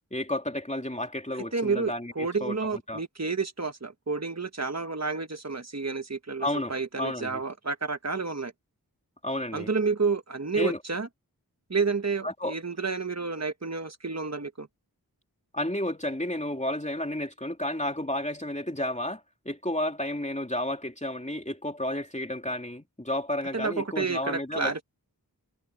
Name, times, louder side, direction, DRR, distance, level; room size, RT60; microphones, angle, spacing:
voice 1, 0.1-2.6 2.9-3.0 6.4-7.4 9.2-9.7 10.6-10.8 12.2-12.5 15.5-24.7, left 1 dB, 20° left, 3.3 m, -32 dB
voice 2, 1.5-8.5 9.5-11.1 11.7-14.7 23.5-24.8, right 4 dB, 45° right, 1.5 m, -30 dB
wide cardioid pair, 45°, 38 cm